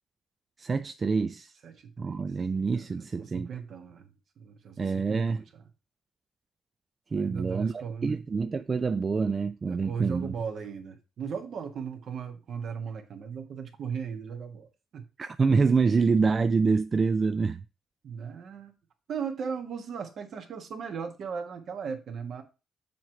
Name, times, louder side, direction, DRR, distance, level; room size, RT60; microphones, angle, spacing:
voice 1, 0.6-1.5 2.0-3.5 4.8-5.4 7.1-10.3 15.2-17.6, right 4 dB, 35° right, 0.4 m, -26 dB
voice 2, 1.6-2.2 2.7-5.5 7.1-8.2 9.6-15.1 18.0-18.7 19.1-22.4, right 6 dB, 60° right, 1.4 m, -37 dB
7.2 x 3.2 x 5.7 m
cardioid pair, 90°, 0 cm